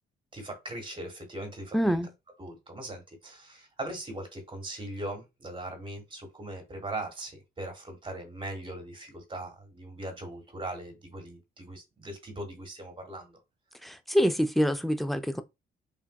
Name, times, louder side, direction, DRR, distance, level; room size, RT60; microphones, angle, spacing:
voice 1, 0.3-2.0 2.4-13.4, right 1 dB, 25° right, 1.3 m, -40 dB
voice 2, 1.7-2.1 13.8-15.4, equal, ahead, 0.3 m, -26 dB
3.4 x 2.5 x 2.2 m
cardioid pair, 90°, 20 cm